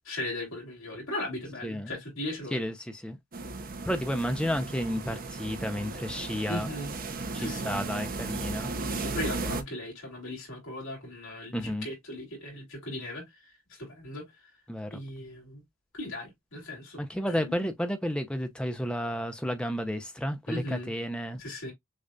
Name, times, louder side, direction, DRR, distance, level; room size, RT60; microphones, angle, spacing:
voice 1, 0.0-2.7 6.5-7.0 7.4-7.8 8.9-14.5 14.9-15.6 15.9-17.7 20.5-20.9 21.4-21.7, left 1 dB, 70° left, 3.0 m, -38 dB
voice 2, 2.5-3.2 3.8-6.7 7.3-8.7 11.5-11.9 14.7-15.0 17.0-21.4, equal, 5° left, 0.5 m, -32 dB
sound 1, 3.3-9.6, right 3 dB, 40° right, 0.6 m, -35 dB
6.5 x 2.4 x 2.6 m
head